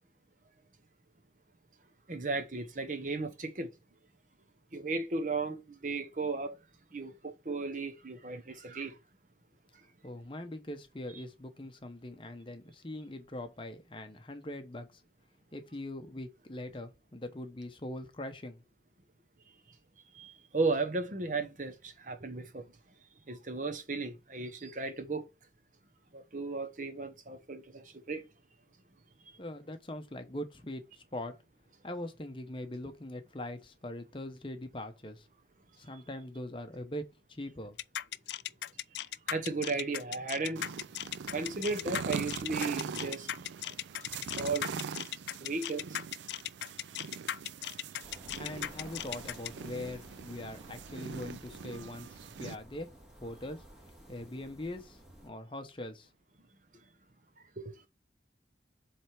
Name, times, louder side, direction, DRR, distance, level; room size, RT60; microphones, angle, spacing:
voice 1, 2.1-3.7 4.7-6.6 6.9-9.0 20.1-22.6 23.3-25.3 26.1-28.3 39.3-40.7 41.3-43.3 44.4-44.6 45.4-45.9 57.6-57.7, right 3 dB, 45° right, 0.9 m, -35 dB
voice 2, 10.0-15.0 15.5-18.6 29.4-31.4 31.8-35.3 35.8-37.8 48.4-52.9 53.2-53.6 54.1-56.1, left 1 dB, 30° left, 0.8 m, -42 dB
sound 1, 37.8-49.5, left 12 dB, 70° left, 0.3 m, -37 dB
sound 2, 40.6-52.6, right 6 dB, 85° right, 0.4 m, -42 dB
sound 3, 48.0-55.3, right 1 dB, 5° right, 1.7 m, -53 dB
7.7 x 3.3 x 4.4 m
head